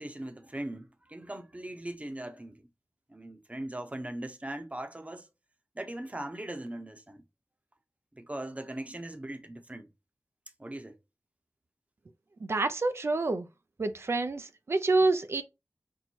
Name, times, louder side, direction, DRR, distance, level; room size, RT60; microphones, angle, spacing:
voice 1, 0.0-2.7 3.1-5.3 5.7-7.2 8.1-9.9 10.6-11.0, right 1 dB, 25° right, 0.8 m, -40 dB
voice 2, 12.4-13.5 13.8-15.4, right 3 dB, 55° right, 0.5 m, -27 dB
4.5 x 2.1 x 4.2 m
cardioid pair, 45°, 5 cm